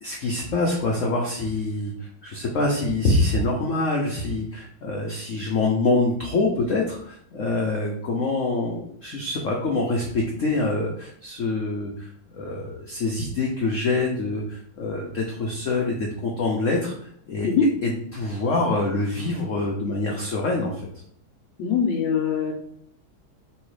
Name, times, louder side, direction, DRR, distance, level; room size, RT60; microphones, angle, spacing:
voice 1, 0.0-17.5 18.1-20.7, left 2 dB, 90° left, -1 dB, 0.6 m, -25 dB
voice 2, 21.6-22.5, left 5 dB, 75° left, 1 dB, 1.3 m, -22 dB
3.2 x 3.1 x 4.7 m, 0.69 s
omnidirectional pair, 2.3 m